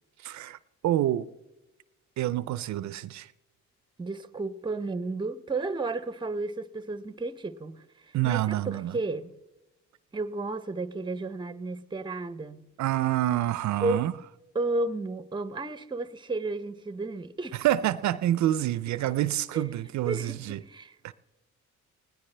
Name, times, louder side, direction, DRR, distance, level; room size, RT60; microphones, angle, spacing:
voice 1, 0.2-0.6 0.8-1.3 2.2-3.3 8.1-9.0 12.8-14.1 17.5-20.6 21.0-21.1, right 13 dB, 70° right, 0.5 m, -27 dB
voice 2, 4.0-9.3 10.1-12.7 13.8-14.1 14.5-17.6 19.5-19.7 20.1-20.4 20.6-20.9, right 2 dB, 15° right, 0.7 m, -33 dB
20.0 x 17.0 x 3.3 m
cardioid pair, 90°, 30 cm